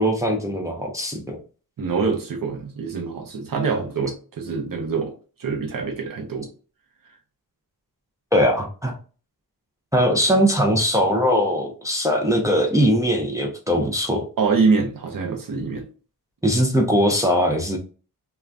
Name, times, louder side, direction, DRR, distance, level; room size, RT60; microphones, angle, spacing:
voice 1, 0.0-1.4 8.3-8.9 9.9-14.2 16.4-17.8, equal, 10° right, 0.4 m, -20 dB
voice 2, 1.8-5.1 5.4-6.5 14.4-15.9, right 4 dB, 55° right, 0.7 m, -24 dB
2.5 x 2.3 x 3.2 m
wide cardioid pair, 175°, 40 cm